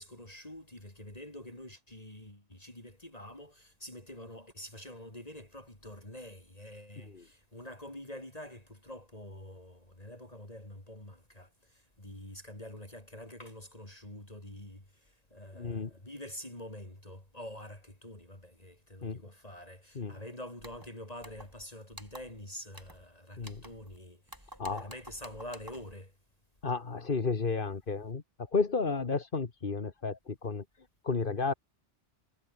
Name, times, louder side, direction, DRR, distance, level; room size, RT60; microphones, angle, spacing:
voice 1, 0.0-26.1, left 1 dB, 30° left, 5.0 m, -47 dB
voice 2, 15.5-15.9 19.0-19.2 19.9-20.2 23.4-23.6 24.6-24.9 26.6-28.2 28.5-30.6 31.0-31.5, left 4 dB, 50° left, 1.6 m, -32 dB
sound 1, 20.6-20.9 21.2-21.6 21.9-22.4 22.7-23.1 23.4-24.0 24.3-26.0, right 1 dB, 15° right, 5.2 m, -51 dB
omnidirectional pair, 1.2 m